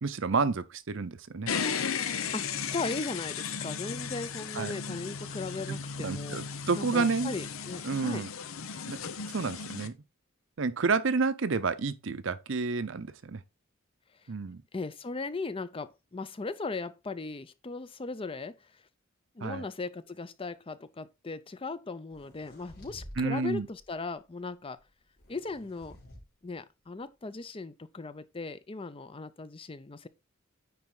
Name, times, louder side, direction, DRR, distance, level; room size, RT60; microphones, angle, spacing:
voice 1, 0.0-1.5 4.6-4.7 6.0-7.3 7.8-8.3 8.9-9.0 9.3-9.9 10.6-13.4 14.3-14.6 19.4-19.6 23.2-23.7, right 4 dB, 65° right, 0.7 m, -30 dB
sound 1, 1.5-9.9, left 6 dB, 85° left, 0.8 m, -35 dB
voice 2, 2.3-8.2 14.7-18.8 19.3-24.8 25.3-26.0 26.4-30.1, left 3 dB, 25° left, 0.5 m, -38 dB
sound 2, 22.1-23.2 23.6-23.9 25.2-26.2, equal, 50° left, 3.7 m, -49 dB
9.6 x 4.2 x 3.8 m
head